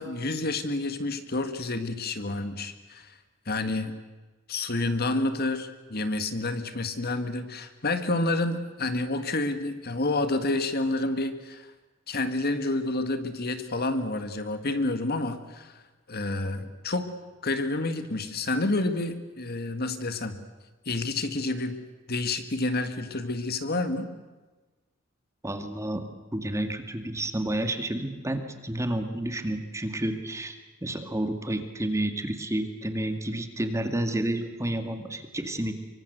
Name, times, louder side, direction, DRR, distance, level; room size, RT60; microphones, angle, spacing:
voice 1, 0.0-3.1 3.5-3.9 4.5-11.7 12.1-15.7 16.1-17.1 17.4-20.4 20.9-21.8 22.1-24.1, left 2 dB, 50° left, 9 dB, 1.9 m, -29 dB
voice 2, 25.4-26.0 26.3-35.8, right 1 dB, 15° right, 7 dB, 2.1 m, -30 dB
25.0 x 24.0 x 8.1 m, 1.2 s
head